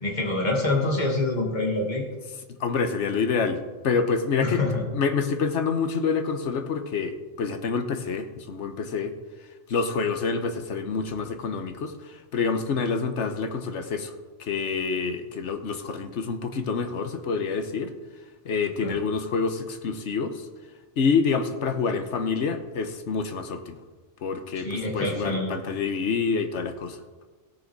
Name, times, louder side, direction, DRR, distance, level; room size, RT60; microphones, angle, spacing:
voice 1, 0.0-2.0 4.4-4.8 18.8-19.0 24.5-25.5, left 2 dB, 40° left, -1 dB, 2.3 m, -26 dB
voice 2, 2.6-3.6 3.8-4.6 4.9-9.1 9.7-11.9 12.3-14.1 14.4-17.9 18.4-20.4 21.0-23.8 24.2-27.0, left 5 dB, 80° left, 8 dB, 1.3 m, -27 dB
16.5 x 6.6 x 4.7 m, 1.3 s
omnidirectional pair, 1.2 m